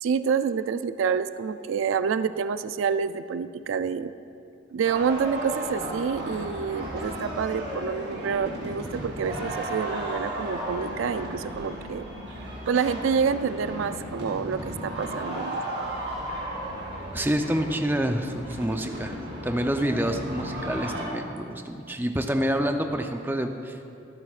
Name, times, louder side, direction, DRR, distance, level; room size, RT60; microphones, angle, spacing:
voice 1, 0.0-4.1 4.7-12.0 12.7-15.6, right 6 dB, 85° right, 12 dB, 0.4 m, -28 dB
sound 1, 4.8-21.0, right 1 dB, 55° right, 3.2 m, -35 dB
voice 2, 17.1-19.1 19.4-23.8, equal, 10° right, 5 dB, 0.5 m, -27 dB
24.5 x 9.0 x 2.4 m, 2.6 s
head